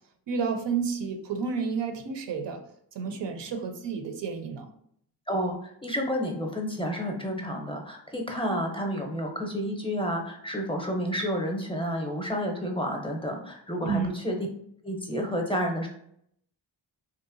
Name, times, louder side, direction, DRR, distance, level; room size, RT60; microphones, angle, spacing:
voice 1, 0.3-2.6 2.9-4.7 13.8-14.1, right 5 dB, 65° right, 5 dB, 0.5 m, -30 dB
voice 2, 5.3-14.4 14.8-15.9, equal, 10° left, 1 dB, 0.5 m, -30 dB
2.8 x 2.1 x 2.5 m, 0.69 s
cardioid pair, 50°, 46 cm